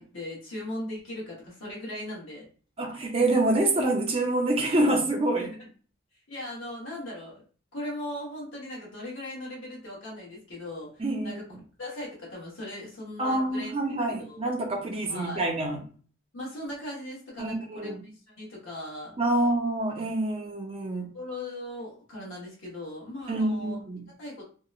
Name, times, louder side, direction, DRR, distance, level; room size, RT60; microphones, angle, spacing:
voice 1, 0.0-2.5 5.4-5.7 6.3-7.4 7.7-11.4 11.8-13.7 14.1-14.5 15.1-15.5 16.3-17.9 18.4-19.2 21.1-23.8 24.2-24.4, left 1 dB, 65° left, -5 dB, 1.0 m, -38 dB
voice 2, 2.8-5.5 11.0-11.4 13.2-15.8 17.4-18.0 19.2-21.1 23.3-24.0, right 2 dB, 30° right, 1 dB, 0.5 m, -26 dB
2.7 x 2.1 x 2.4 m, 0.41 s
head